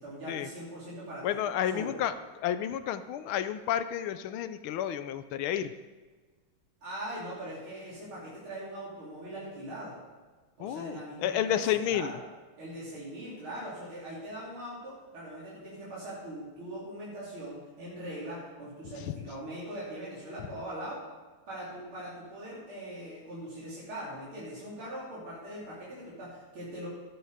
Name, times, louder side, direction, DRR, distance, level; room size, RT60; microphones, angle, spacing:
voice 1, 0.0-1.4 1.7-2.0 6.8-10.0 10.6-11.6 11.9-12.2 12.6-21.0 21.5-26.9, right 1 dB, 70° right, -8 dB, 4.4 m, -41 dB
voice 2, 1.2-5.7 10.6-12.1, left 10 dB, 75° left, 11 dB, 1.4 m, -31 dB
13.5 x 11.0 x 5.0 m, 1.3 s
omnidirectional pair, 2.4 m